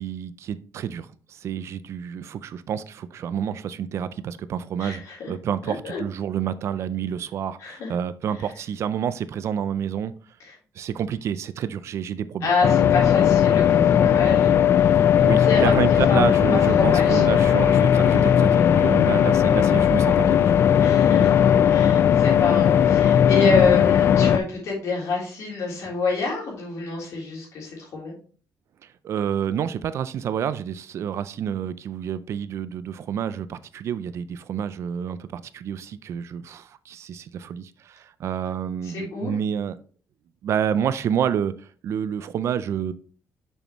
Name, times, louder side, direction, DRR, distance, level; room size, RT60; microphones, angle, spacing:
voice 1, 0.0-10.1 10.8-12.5 15.2-20.6 28.8-39.8 40.4-42.9, right 8 dB, 50° right, 0.4 m, -29 dB
voice 2, 4.8-5.3 5.8-6.0 7.6-7.9 10.4-10.5 12.4-15.7 16.1-16.2 16.5-17.5 18.1-18.2 20.8-21.3 21.6-28.1 38.8-39.3, left 3 dB, 60° left, 3.4 m, -27 dB
sound 1, 12.6-24.4, left 9 dB, 45° left, 0.4 m, -17 dB
6.6 x 6.2 x 3.0 m
cardioid pair, 170°, 6 cm